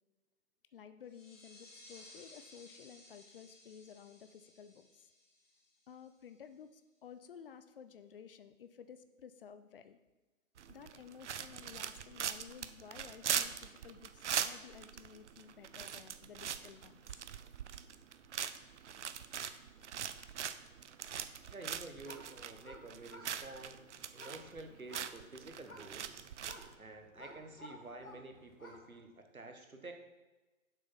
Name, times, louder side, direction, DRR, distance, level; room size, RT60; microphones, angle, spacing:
voice 1, 0.7-5.1 5.9-10.0 10.7-17.2 19.1-19.5, left 7 dB, 40° left, 10 dB, 0.6 m, -54 dB
sound 1, 1.1-6.4, left 2 dB, 65° left, 2.6 m, -59 dB
sound 2, 10.6-26.7, right 8 dB, 55° right, 0.6 m, -41 dB
voice 2, 21.5-23.8 24.1-26.3 26.8-29.9, right 2 dB, 85° right, 5 dB, 1.4 m, -50 dB
sound 3, 21.8-29.0, left 1 dB, 80° left, 1.8 m, -55 dB
7.5 x 6.1 x 5.6 m, 1.2 s
figure-of-eight pair, 120°, 41 cm